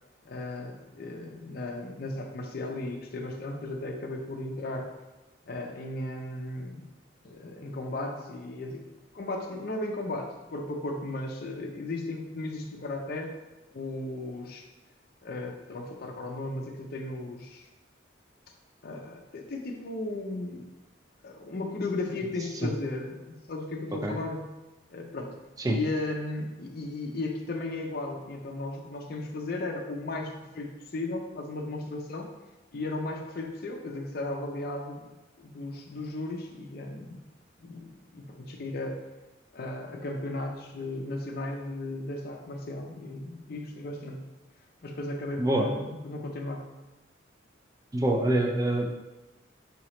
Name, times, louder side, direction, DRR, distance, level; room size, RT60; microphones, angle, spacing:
voice 1, 0.2-4.9 5.5-6.9 7.2-8.8 9.1-13.3 13.7-14.7 15.2-17.7 18.8-20.6 21.2-24.5 24.9-25.3 25.6-32.3 32.7-35.1 35.4-37.2 37.6-37.9 38.1-39.0 39.5-44.2 44.8-46.7, left 2 dB, 55° left, 1 dB, 0.5 m, -35 dB
voice 2, 45.4-45.7 47.9-48.9, right 1 dB, 20° right, 1 dB, 0.3 m, -25 dB
4.9 x 2.9 x 3.0 m, 1.1 s
head